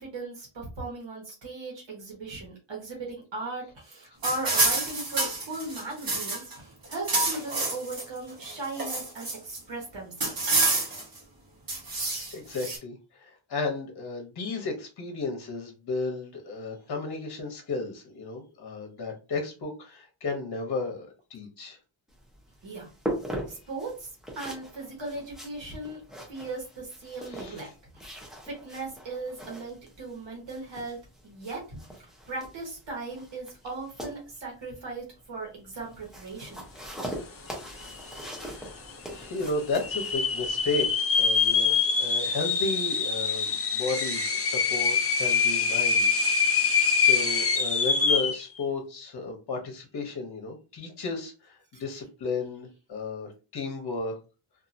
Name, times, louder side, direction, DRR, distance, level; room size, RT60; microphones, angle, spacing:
voice 1, 0.0-10.5 22.6-22.9 23.5-26.0 26.3-27.7 28.0-31.0 31.2-36.6 51.7-51.8, right 2 dB, 65° right, -3 dB, 1.2 m, -38 dB
sound 1, 4.2-6.6 6.8-8.1 8.4-9.6 10.2-11.2 11.7-12.8, right 2 dB, 45° right, 1.1 m, -28 dB
voice 2, 12.0-21.8 27.3-27.6 38.4-38.8 39.1-46.2 47.0-54.2, left 3 dB, 55° left, 2 dB, 0.9 m, -34 dB
sound 2, 22.1-40.9, equal, ahead, 0.7 m, -41 dB
sound 3, 37.5-37.6 37.8-38.4 38.9-39.0 39.7-48.4, left 5 dB, 30° left, 0.4 m, -25 dB
2.7 x 2.6 x 2.6 m, 0.32 s
wide cardioid pair, 160°, 48 cm